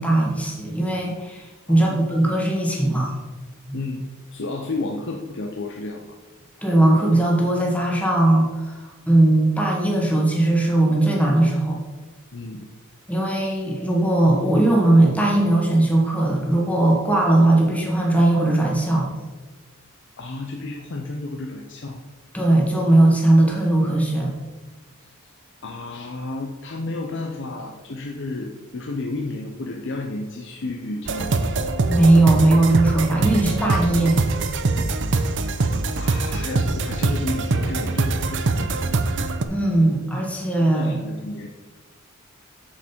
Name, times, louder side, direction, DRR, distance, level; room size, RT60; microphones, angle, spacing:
voice 1, 0.0-3.1 3.7-3.8 6.6-11.8 13.1-19.1 22.3-24.3 31.9-34.3 39.5-41.0, right 1 dB, 5° left, -1 dB, 1.6 m, -19 dB
voice 2, 1.7-2.1 3.7-4.0 4.3-6.2 12.3-12.6 20.2-22.0 25.0-25.1 25.6-31.5 36.0-38.9 40.7-41.5, left 2 dB, 55° left, 2 dB, 0.7 m, -32 dB
sound 1, 31.1-39.4, right 3 dB, 55° right, 0.6 m, -23 dB
7.5 x 7.3 x 4.4 m, 1.3 s
head